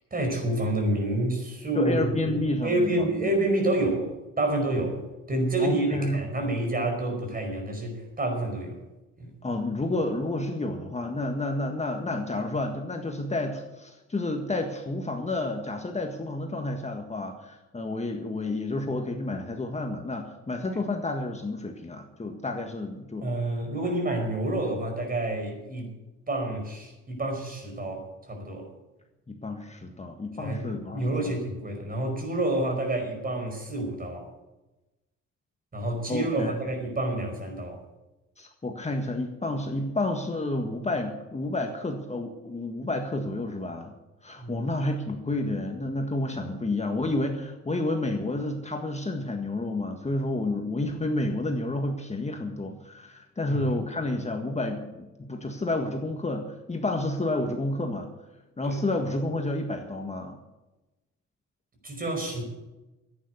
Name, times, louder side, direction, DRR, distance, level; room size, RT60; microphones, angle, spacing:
voice 1, 0.1-5.0 5.3-8.8 9.2-9.3 20.7-20.8 23.2-25.9 26.3-28.7 30.4-34.3 35.7-37.8 44.4-44.6 53.5-53.7 58.6-58.8 61.8-62.4, right 1 dB, 30° right, 3 dB, 5.2 m, -28 dB
voice 2, 1.7-3.3 5.6-6.2 9.4-23.3 29.3-31.4 36.1-36.6 38.4-43.9 44.2-58.1 58.6-60.4, left 2 dB, 20° left, 3 dB, 1.6 m, -30 dB
11.5 x 9.5 x 9.4 m, 1.0 s
cardioid pair, 90°, 30 cm